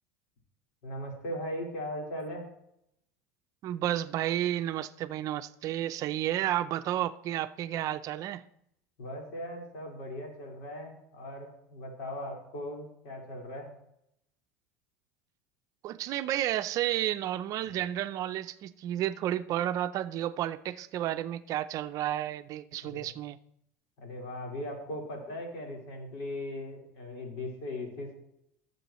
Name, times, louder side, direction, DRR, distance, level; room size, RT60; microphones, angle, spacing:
voice 1, 0.8-2.5 9.0-13.7 22.8-23.1 24.0-28.1, left 1 dB, 75° left, 4.4 m, -39 dB
voice 2, 3.6-8.4 15.8-23.4, right 12 dB, 50° right, 0.6 m, -31 dB
18.5 x 7.7 x 3.1 m
supercardioid pair, 120°, 8 cm